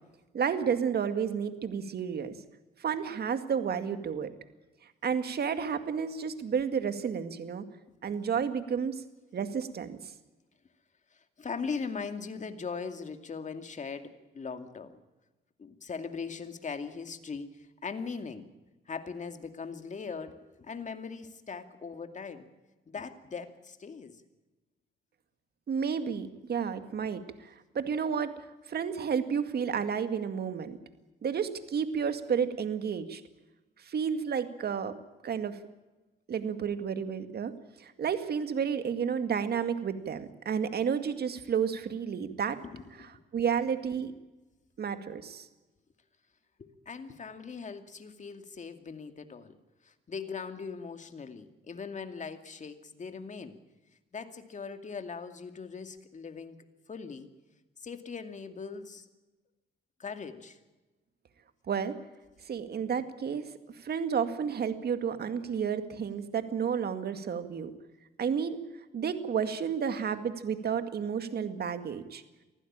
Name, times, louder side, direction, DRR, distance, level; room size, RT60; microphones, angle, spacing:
voice 1, 0.3-2.4 2.8-4.3 5.0-7.6 8.0-9.0 9.3-10.0 25.7-28.4 28.7-30.8 31.2-33.2 33.8-35.0 35.2-35.6 36.3-37.5 37.8-42.6 43.3-44.1 44.8-45.5 61.7-62.0 62.4-67.7 68.2-68.6 68.9-72.2, right 7 dB, 55° right, 9 dB, 2.1 m, -31 dB
voice 2, 11.1-15.0 15.6-18.5 18.9-22.5 22.9-24.2 42.6-43.1 46.6-49.6 49.8-53.6 54.1-57.3 57.8-59.1 60.0-60.6, left 5 dB, 40° left, 8 dB, 2.4 m, -40 dB
24.0 x 15.5 x 8.8 m, 1.1 s
cardioid pair, 90°, 20 cm